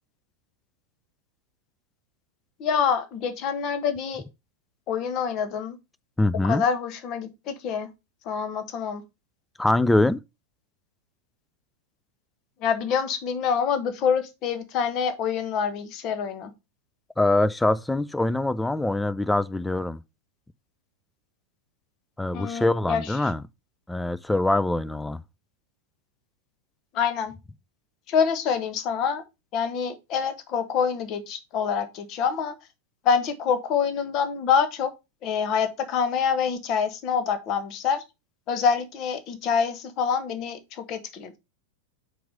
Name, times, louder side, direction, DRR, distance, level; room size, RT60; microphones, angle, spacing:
voice 1, 2.6-4.2 4.9-5.8 6.4-7.9 8.2-9.0 12.6-16.5 22.3-23.0 26.9-27.3 28.1-29.2 29.5-32.5 33.0-34.9 35.2-38.0 38.5-41.4, left 6 dB, 35° left, 1.2 m, -26 dB
voice 2, 6.2-6.6 9.6-10.2 17.2-20.0 22.2-23.4 23.9-25.2, left 2 dB, 5° left, 0.4 m, -23 dB
4.8 x 4.6 x 5.1 m
figure-of-eight pair, 90°, 0 cm